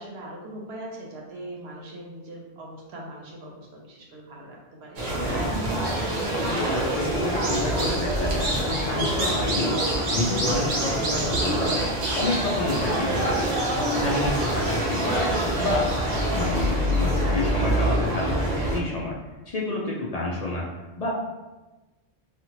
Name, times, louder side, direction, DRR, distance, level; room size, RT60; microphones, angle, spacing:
voice 1, 0.0-5.0, right 1 dB, 70° right, -2 dB, 0.9 m, -41 dB
sound 1, 5.0-18.8, right 1 dB, 55° right, 0.6 m, -25 dB
voice 2, 6.5-11.9 12.2-15.3 15.6-15.8 16.3-19.2 19.5-20.6 21.0-21.1, left 2 dB, 60° left, -4 dB, 0.4 m, -29 dB
2.8 x 2.4 x 2.9 m, 1.1 s
omnidirectional pair, 1.1 m